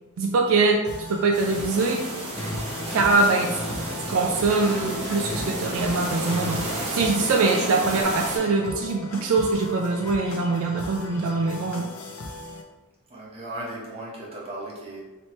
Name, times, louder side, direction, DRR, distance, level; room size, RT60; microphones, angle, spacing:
voice 1, 0.2-0.8 1.1-2.0 2.9-3.8 4.1-6.6 6.9-11.9, right 3 dB, 70° right, 2 dB, 0.4 m, -23 dB
sound 1, 0.8-12.6, left 2 dB, 90° left, 0.6 m, -39 dB
sound 2, 1.3-8.4, right 1 dB, 90° right, 1.2 m, -32 dB
sound 3, 2.4-8.0, equal, 5° left, 0.6 m, -36 dB
voice 2, 13.1-15.0, right 1 dB, 25° right, -6 dB, 1.0 m, -36 dB
3.1 x 3.0 x 4.2 m, 1.2 s
head